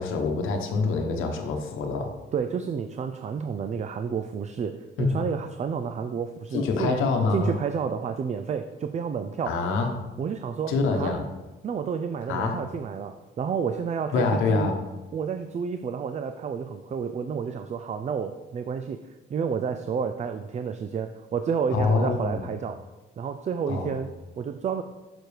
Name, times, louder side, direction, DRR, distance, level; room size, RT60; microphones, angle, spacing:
voice 1, 0.0-2.1 5.0-5.2 6.5-7.6 9.4-10.0 10.7-11.3 12.3-12.6 14.1-14.8 21.7-22.5 23.7-23.9, left 4 dB, 90° left, 4 dB, 1.0 m, -25 dB
voice 2, 2.3-7.0 7.3-9.6 10.2-11.2 11.6-14.7 15.1-22.8 23.2-24.8, right 6 dB, 35° right, 9 dB, 0.4 m, -30 dB
6.9 x 6.1 x 3.3 m, 1.1 s
cardioid pair, 90°, 20 cm